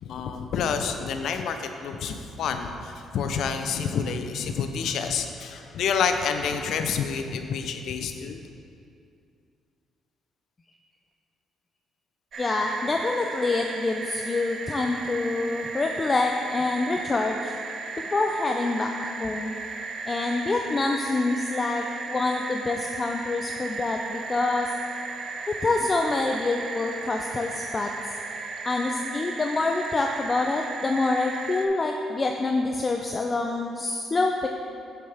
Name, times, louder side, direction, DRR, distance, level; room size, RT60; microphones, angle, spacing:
voice 1, 0.0-8.5, left 6 dB, 75° left, 7 dB, 0.6 m, -28 dB
sound 1, 12.3-31.7, right 4 dB, 60° right, 0.8 m, -36 dB
voice 2, 12.4-17.6 18.1-18.9 19.2-19.5 20.0-24.7 25.6-27.9 28.6-34.5, left 3 dB, 30° left, 2 dB, 0.5 m, -26 dB
9.4 x 6.7 x 3.5 m, 2.4 s
cardioid pair, 75°, 0 cm